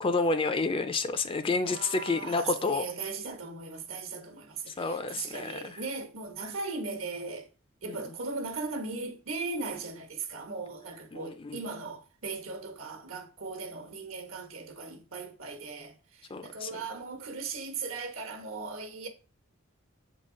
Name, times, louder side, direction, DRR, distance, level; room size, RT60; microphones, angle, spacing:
voice 1, 0.0-2.8 4.7-5.8 7.8-8.0 11.1-11.6 16.3-16.8, left 3 dB, 25° left, 0.4 m, -30 dB
voice 2, 1.7-7.5 7.8-19.1, right 4 dB, 70° right, 1.2 m, -38 dB
7.0 x 3.8 x 3.7 m
head